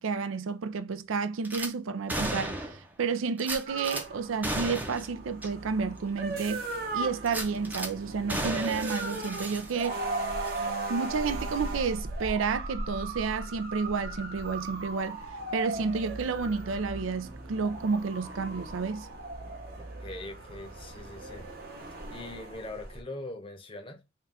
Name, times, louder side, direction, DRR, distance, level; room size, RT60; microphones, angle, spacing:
voice 1, 0.0-6.6 6.9-10.0 10.9-15.2 15.5-19.1, right 5 dB, 85° right, 0.4 m, -31 dB
Gunshot gunfire / Glass, 1.4-1.7 2.1-2.9 3.4-4.0 4.4-5.1 5.4-5.5 6.0-6.1 7.2-7.9 8.3-10.1 10.4-10.6, right 1 dB, 10° right, 0.5 m, -34 dB
sound 1, 3.7-23.0, right 2 dB, 50° right, 0.9 m, -37 dB
voice 2, 20.0-21.5 22.0-24.0, left 2 dB, 25° left, 0.8 m, -42 dB
3.7 x 2.3 x 4.1 m
head